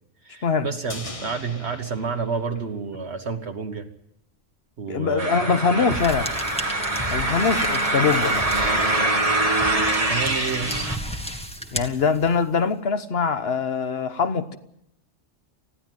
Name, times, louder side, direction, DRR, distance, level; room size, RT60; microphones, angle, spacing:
voice 1, 0.2-3.9 4.8-6.0 10.1-10.9, right 5 dB, 60° right, 1.5 m, -30 dB
sound 1, 0.9-3.3 3.6-3.7, left 2 dB, 30° left, 1.3 m, -41 dB
voice 2, 4.9-6.3 7.1-8.5 11.7-14.6, left 5 dB, 55° left, 1.3 m, -23 dB
sound 2, 5.2-11.0, right 2 dB, 30° right, 1.4 m, -24 dB
sound 3, 5.9-12.5, equal, 5° left, 1.7 m, -34 dB
20.5 x 15.5 x 9.2 m
omnidirectional pair, 1.3 m